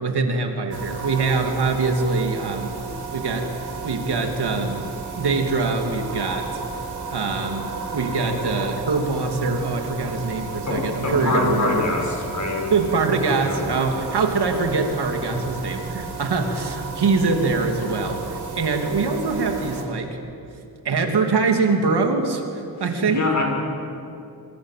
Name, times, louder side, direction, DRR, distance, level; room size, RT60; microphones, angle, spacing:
voice 1, 0.0-2.7 3.1-3.5 3.8-6.5 7.1-11.8 12.7-18.2 18.6-20.2 20.8-23.4, right 4 dB, 85° right, 4 dB, 3.1 m, -23 dB
sound 1, 0.7-19.8, right 4 dB, 50° right, 5.0 m, -33 dB
voice 2, 10.7-12.7 13.4-13.6 23.1-23.4, left 3 dB, 50° left, 0 dB, 6.5 m, -24 dB
27.0 x 25.5 x 7.7 m, 2.8 s
wide cardioid pair, 125°, 39 cm